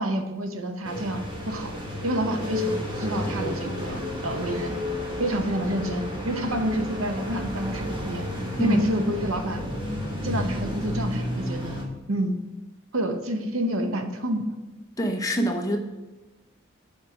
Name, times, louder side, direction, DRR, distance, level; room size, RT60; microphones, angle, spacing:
voice 1, 0.0-1.8 2.0-4.8 5.2-8.3 8.6-9.6 10.2-11.8 12.1-12.4 12.9-14.4, right 1 dB, 80° right, 6 dB, 0.9 m, -28 dB
sound 1, 0.8-11.8, left 1 dB, 25° right, 1.3 m, -31 dB
voice 2, 8.6-8.9 15.0-15.8, equal, 15° left, 3 dB, 0.8 m, -25 dB
7.4 x 4.7 x 5.8 m, 1.2 s
head